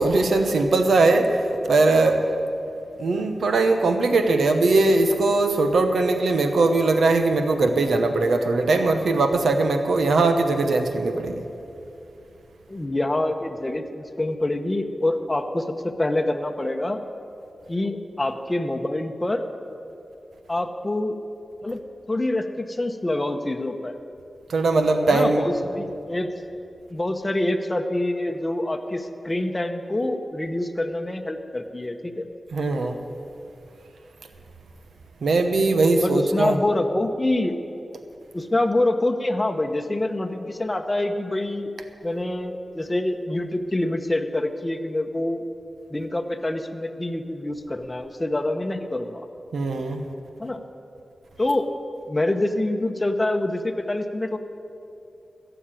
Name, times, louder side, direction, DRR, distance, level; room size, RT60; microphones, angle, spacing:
voice 1, 0.0-2.3 3.0-11.4 24.5-25.5 32.5-33.0 35.2-36.6 49.5-50.0, right 3 dB, 90° right, 7 dB, 1.1 m, -20 dB
voice 2, 12.7-17.0 17.7-19.4 20.5-21.2 21.6-21.8 22.1-23.9 25.1-26.3 26.9-32.3 35.9-37.6 38.3-41.7 42.0-45.4 45.9-49.2 50.4-50.6 51.4-51.7 52.1-54.4, left 1 dB, 25° left, 5 dB, 1.0 m, -26 dB
15.0 x 7.0 x 9.1 m, 2.7 s
cardioid pair, 65°, 0 cm